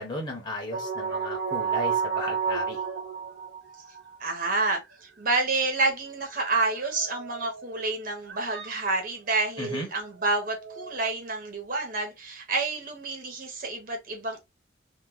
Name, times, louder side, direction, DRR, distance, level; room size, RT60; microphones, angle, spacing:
voice 1, 0.0-2.8 9.6-9.9, left 1 dB, 25° left, 1.1 m, -35 dB
sound 1, 0.7-4.2 4.5-4.6 6.4-7.9 8.3-8.8 9.3-9.6 10.3-11.0, right 6 dB, 80° right, 1.2 m, -32 dB
voice 2, 4.2-14.4, right 3 dB, 45° right, 0.9 m, -29 dB
3.0 x 2.0 x 3.7 m
head